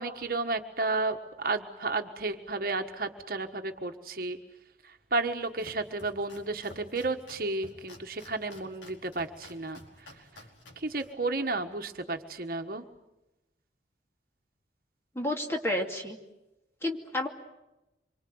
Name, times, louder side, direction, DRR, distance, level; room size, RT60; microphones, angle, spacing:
voice 1, 0.0-4.4 5.1-9.8 10.8-12.8, right 3 dB, 50° right, 5 dB, 1.5 m, -32 dB
Domestic sounds home sounds, 5.2-12.2, left 1 dB, 85° left, 4.7 m, -53 dB
voice 2, 15.1-16.2 16.8-17.3, left 1 dB, 15° left, 1 dB, 2.5 m, -30 dB
26.5 x 24.5 x 7.9 m, 0.98 s
head